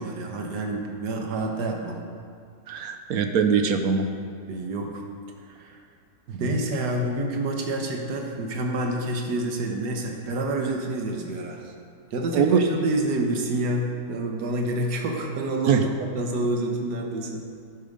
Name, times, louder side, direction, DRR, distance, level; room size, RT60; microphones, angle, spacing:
voice 1, 0.0-2.0 4.5-5.0 5.5-5.8 6.4-11.7 12.1-17.5, right 1 dB, 90° right, 2 dB, 1.7 m, -28 dB
voice 2, 2.7-4.1 6.3-6.5 12.3-12.6 15.7-15.9, right 6 dB, 70° right, 6 dB, 1.2 m, -22 dB
11.0 x 8.8 x 5.3 m, 2.2 s
omnidirectional pair, 1.7 m